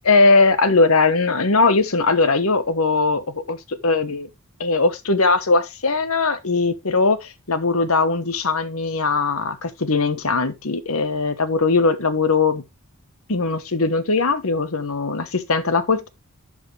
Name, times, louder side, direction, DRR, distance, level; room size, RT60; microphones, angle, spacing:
voice 1, 0.1-4.3 4.6-12.6 13.3-16.1, left 3 dB, 75° left, 1.2 m, -20 dB
11.0 x 5.0 x 3.3 m
head